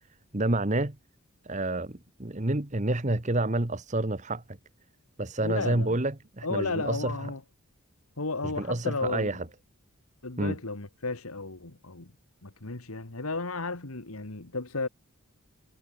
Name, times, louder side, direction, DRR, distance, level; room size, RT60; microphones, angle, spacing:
voice 1, 0.3-0.9 1.4-4.4 5.2-7.3 8.4-9.4 10.4-10.5, right 2 dB, 35° right, 1.4 m, -29 dB
voice 2, 5.4-6.0 6.4-7.4 8.2-9.4 10.2-12.1 12.4-14.9, left 3 dB, 85° left, 2.2 m, -33 dB
head